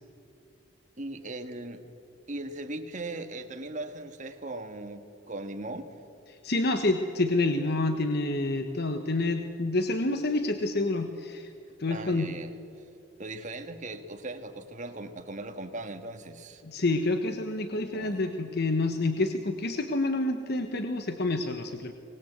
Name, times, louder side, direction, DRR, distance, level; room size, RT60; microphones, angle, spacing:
voice 1, 1.0-1.8 2.3-5.9 11.9-12.5 13.2-16.6 17.7-18.2, right 2 dB, 40° right, 6 dB, 1.6 m, -39 dB
voice 2, 6.3-11.5 11.8-12.3 16.6-21.9, left 2 dB, 55° left, 7 dB, 1.1 m, -28 dB
24.0 x 19.5 x 8.1 m, 2.5 s
head